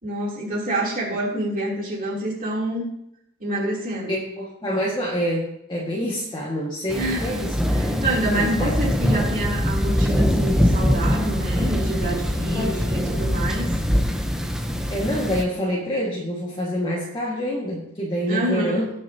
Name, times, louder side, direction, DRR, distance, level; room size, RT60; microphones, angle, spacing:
voice 1, 0.0-2.9 3.4-4.1 6.9-13.7 18.3-18.8, right 1 dB, 40° right, -4 dB, 3.2 m, -27 dB
voice 2, 4.1-7.5 8.4-8.7 12.5-13.2 14.9-18.9, equal, 20° left, -5 dB, 1.8 m, -27 dB
sound 1, 6.9-15.4, equal, 5° right, 0.8 m, -23 dB
19.0 x 6.3 x 2.9 m, 0.78 s
head